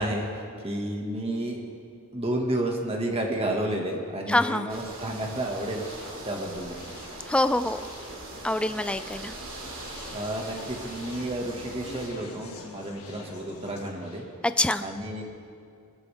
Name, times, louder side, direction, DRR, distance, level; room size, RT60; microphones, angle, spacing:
voice 1, 0.0-1.6 2.1-5.8 6.3-6.8 10.1-14.2 14.8-15.2, right 1 dB, 25° right, 1 dB, 1.8 m, -31 dB
voice 2, 4.3-4.7 7.3-7.8 8.4-9.3 14.4-14.9, left 1 dB, 5° left, 11 dB, 0.3 m, -25 dB
sound 1, 4.7-12.1, right 2 dB, 60° right, 2.7 m, -41 dB
Conversation, 5.8-14.2, left 2 dB, 75° left, 2.1 m, -46 dB
21.5 x 14.0 x 3.6 m, 2.3 s
head